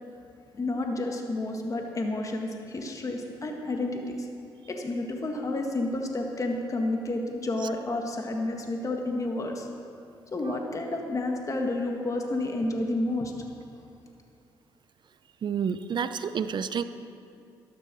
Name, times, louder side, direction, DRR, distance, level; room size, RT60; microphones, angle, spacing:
voice 1, 0.6-4.3 4.7-9.7 10.3-13.3, left 2 dB, 35° left, 2 dB, 1.7 m, -30 dB
voice 2, 15.4-16.8, right 7 dB, 55° right, 12 dB, 0.7 m, -29 dB
13.0 x 11.5 x 6.1 m, 2.5 s
supercardioid pair, 65°, 9 cm